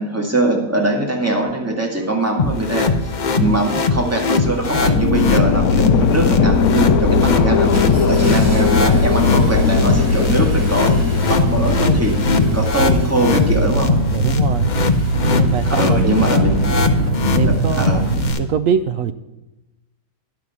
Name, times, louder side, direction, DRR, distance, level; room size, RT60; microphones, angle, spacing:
voice 1, 0.0-3.1 3.4-7.7 8.0-11.0 11.3-13.9 15.7-16.6 17.4-18.0, right 1 dB, 10° right, 0 dB, 2.0 m, -21 dB
Engine starting, 2.0-2.1 2.8-3.1 3.8-4.1 4.5-5.0 5.5-6.0 6.4-6.6 6.9-18.3, right 2 dB, 45° right, 2.3 m, -23 dB
sound 1, 2.4-18.4, left 4 dB, 50° left, 0.5 m, -21 dB
sound 2, 4.7-14.7, left 5 dB, 70° left, 1.0 m, -19 dB
voice 2, 8.1-8.5 14.1-14.7 15.3-16.3 17.3-19.1, right 7 dB, 70° right, 11 dB, 0.8 m, -23 dB
11.0 x 5.9 x 8.3 m, 0.98 s
omnidirectional pair, 1.8 m